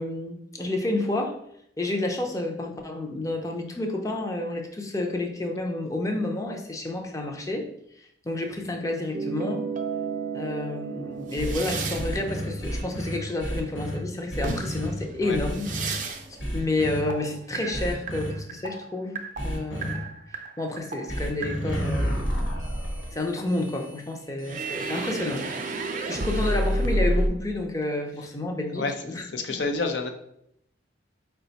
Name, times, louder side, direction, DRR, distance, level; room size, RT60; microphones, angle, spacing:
voice 1, 0.0-1.4 1.8-7.7 8.0-9.7 10.3-15.7 16.3-22.2 23.1-25.8 26.1-29.2, left 2 dB, 15° left, 2 dB, 0.5 m, -30 dB
sound 1, 9.1-14.1 14.4-16.3 16.6-22.8 24.4-27.3, right 2 dB, 45° right, 0.4 m, -32 dB
sound 2, 11.4-14.0 14.3-14.9 15.3-15.9 16.4-17.0 17.7-18.3 19.4-19.9 21.1-26.9, equal, 85° left, 1.3 m, -32 dB
voice 2, 29.3-30.1, left 3 dB, 70° left, 5 dB, 0.6 m, -28 dB
4.9 x 2.2 x 3.9 m, 0.74 s
head